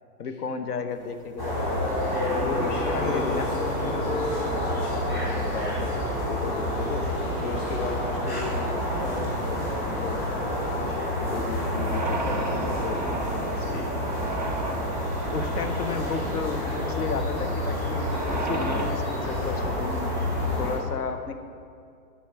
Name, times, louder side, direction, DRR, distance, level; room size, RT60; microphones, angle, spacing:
voice 1, 0.2-1.8 2.4-3.7 15.3-20.1 20.6-21.3, left 5 dB, 75° left, 8 dB, 1.0 m, -33 dB
sound 1, 0.9-18.9, right 2 dB, 30° right, 0.4 m, -37 dB
sound 2, 1.4-20.8, left 1 dB, 15° left, 1.2 m, -28 dB
voice 2, 2.0-11.0 11.3-14.3, left 4 dB, 55° left, 4 dB, 0.7 m, -36 dB
8.8 x 6.5 x 5.7 m, 2.3 s
hypercardioid pair, 175°, 46 cm